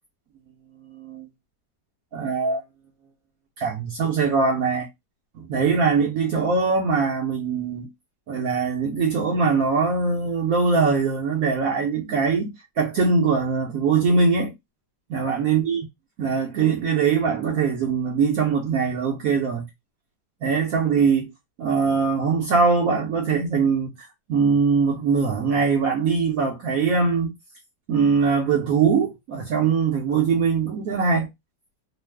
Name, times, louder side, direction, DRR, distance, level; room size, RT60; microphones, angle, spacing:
voice 1, 0.8-1.3 2.1-2.6 3.6-4.9 5.3-7.9 8.3-14.5 15.1-15.9 16.2-19.7 20.4-21.3 21.6-27.3 27.9-31.3, right 5 dB, 65° right, 0.9 m, -22 dB
3.0 x 2.0 x 3.2 m
omnidirectional pair, 1.9 m